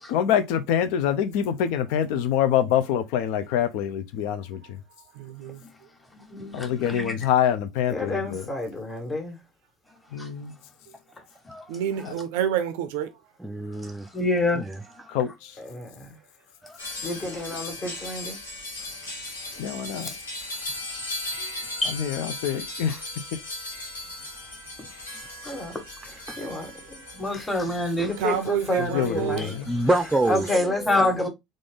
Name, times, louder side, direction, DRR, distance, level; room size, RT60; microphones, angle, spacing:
voice 1, 0.1-4.8 6.5-8.5 10.1-10.5 12.0-12.1 15.1-15.5 19.6-20.1 21.9-23.0 28.8-29.7, left 9 dB, 65° left, 0.5 m, -25 dB
voice 2, 5.2-5.6 11.7-13.1 17.0-17.2 28.2-29.4, right 10 dB, 70° right, 0.4 m, -28 dB
voice 3, 6.1-7.1 10.1-10.3 11.4-11.6 14.1-14.6 16.6-16.8 17.3-17.4 21.8-22.0 22.9-23.0 24.8-24.9 25.4-25.5 27.2-28.1 29.4-29.5 30.9-31.3, left 2 dB, 15° left, 1.3 m, -27 dB
voice 4, 7.9-9.4 15.6-16.0 17.0-18.4 20.0-20.2 25.4-25.8 26.4-26.7 27.3-27.5 28.0-29.5 30.3-31.3, left 1 dB, 35° left, 1.5 m, -29 dB
voice 5, 13.4-14.1 14.6-14.8 26.3-26.4 29.7-31.0, right 1 dB, 10° right, 0.5 m, -26 dB
sound 1, 16.8-30.6, left 2 dB, 85° left, 0.9 m, -38 dB
3.8 x 2.5 x 3.4 m
hypercardioid pair, 60°, 0 cm